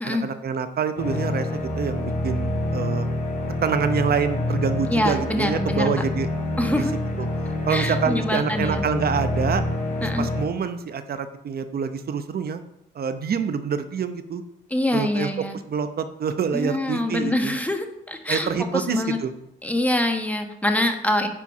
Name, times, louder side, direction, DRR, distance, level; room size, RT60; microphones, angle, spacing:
voice 1, 0.0-3.1 3.6-6.3 6.8-6.9 7.2-7.3 7.7-9.6 10.2-12.6 12.9-14.4 14.9-17.5 18.3-19.3, right 6 dB, 50° right, 10 dB, 0.8 m, -26 dB
sound 1, 1.0-10.4, left 1 dB, 40° left, 3.0 m, -27 dB
voice 2, 4.9-5.9 6.6-6.9 7.7-8.8 10.0-10.3 14.7-15.6 16.5-19.2 19.6-21.3, left 1 dB, 5° left, 5 dB, 1.3 m, -25 dB
9.9 x 4.6 x 6.1 m, 0.82 s
cardioid pair, 90°, 20 cm